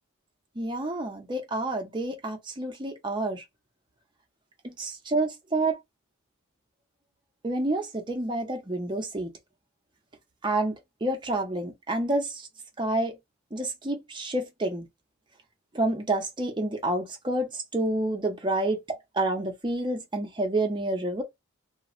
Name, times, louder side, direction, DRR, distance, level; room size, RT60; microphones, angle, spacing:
voice 1, 0.6-3.4 4.6-5.8 7.4-9.3 10.4-10.7 11.0-12.5 12.8-13.2 13.5-14.9 15.7-21.2, right 2 dB, 20° right, 0.6 m, -29 dB
2.4 x 2.3 x 2.9 m
head